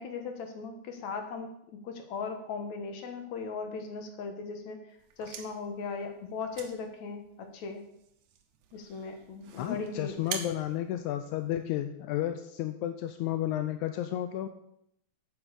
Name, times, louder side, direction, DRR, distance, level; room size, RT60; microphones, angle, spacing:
voice 1, 0.0-4.8 5.2-7.8 8.7-10.4, left 4 dB, 65° left, 5 dB, 2.4 m, -38 dB
sound 1, 5.0-11.8, right 7 dB, 65° right, 2.2 m, -46 dB
voice 2, 9.6-14.5, left 12 dB, 80° left, 8 dB, 1.7 m, -32 dB
8.9 x 8.1 x 6.8 m, 0.77 s
omnidirectional pair, 4.0 m